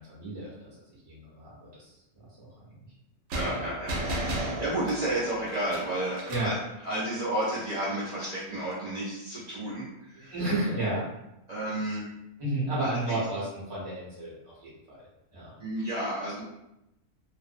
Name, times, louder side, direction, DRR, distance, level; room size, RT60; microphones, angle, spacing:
voice 1, 0.1-1.9 6.3-6.5 10.3-11.0 12.4-14.3 14.6-14.7 15.3-15.5, right 2 dB, 30° right, -8 dB, 0.8 m, -32 dB
voice 2, 3.3-6.6 6.8-10.4 11.5-12.1 12.8-13.2 15.6-16.4, right 1 dB, 55° right, -8 dB, 0.4 m, -32 dB
sound 1, 3.3-6.6, right 1 dB, 85° right, 1.0 m, -34 dB
2.5 x 2.0 x 2.4 m, 0.89 s
omnidirectional pair, 1.3 m